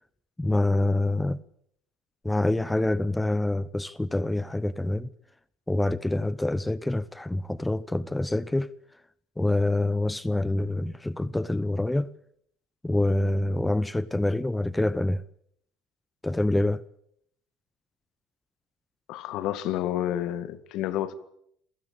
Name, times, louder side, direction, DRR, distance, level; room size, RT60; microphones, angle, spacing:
voice 1, 0.4-1.4 2.2-5.1 5.7-8.7 9.4-12.1 12.8-15.2 16.2-16.8, left 1 dB, 10° left, 0.9 m, -26 dB
voice 2, 19.1-21.1, left 12 dB, 60° left, 2.0 m, -29 dB
27.5 x 16.0 x 8.9 m
hypercardioid pair, 70°, 0 cm